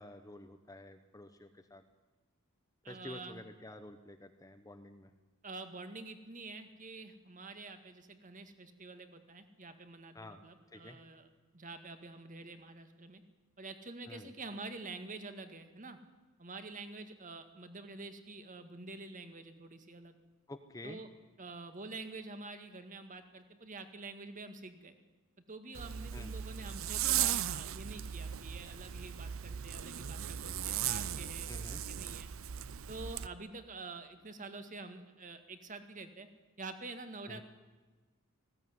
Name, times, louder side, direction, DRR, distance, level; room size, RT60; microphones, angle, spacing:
voice 1, 0.0-1.8 2.9-5.1 10.1-10.4 10.7-11.0 14.1-14.3 20.5-21.0 26.1-26.3 31.5-31.8 37.3-37.4, left 1 dB, 15° left, 6 dB, 1.0 m, -49 dB
voice 2, 2.8-3.4 5.4-11.3 11.5-13.2 13.6-16.0 16.4-20.1 20.8-21.1 21.4-24.9 25.5-32.3 32.9-36.3 36.6-37.4, right 3 dB, 35° right, 8 dB, 1.9 m, -47 dB
Zipper (clothing), 25.7-33.3, right 10 dB, 65° right, 0.6 m, -37 dB
19.5 x 16.5 x 9.7 m, 1.2 s
head